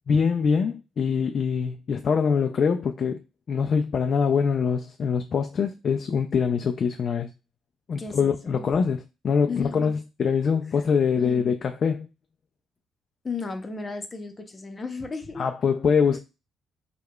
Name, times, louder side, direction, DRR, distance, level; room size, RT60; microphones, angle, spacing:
voice 1, 0.1-3.2 3.5-7.3 7.9-12.1 15.4-16.2, left 6 dB, 50° left, 0.3 m, -24 dB
voice 2, 8.0-8.7 9.5-9.9 11.2-11.5 13.2-15.5, left 4 dB, 30° left, 0.7 m, -34 dB
4.7 x 2.2 x 2.2 m
cardioid pair, 90°, 0 cm